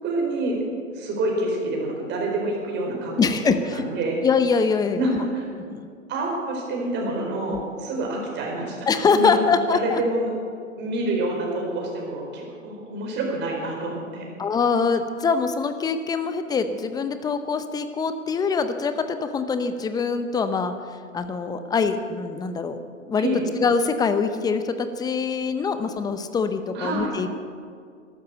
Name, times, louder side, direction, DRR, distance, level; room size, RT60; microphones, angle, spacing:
voice 1, 0.0-0.6 0.9-4.2 4.9-5.4 6.1-8.9 9.1-9.4 9.7-10.3 10.8-14.3 23.2-23.4 26.7-27.1, right 2 dB, 25° right, 0 dB, 4.6 m, -27 dB
voice 2, 3.2-3.8 4.2-5.2 5.5-5.9 7.5-7.6 8.9-10.0 14.4-20.7 21.1-22.8 23.1-23.3 23.6-27.3, left 5 dB, 10° left, 10 dB, 0.6 m, -24 dB
13.0 x 12.0 x 7.9 m, 2.2 s
hypercardioid pair, 115°, 40 cm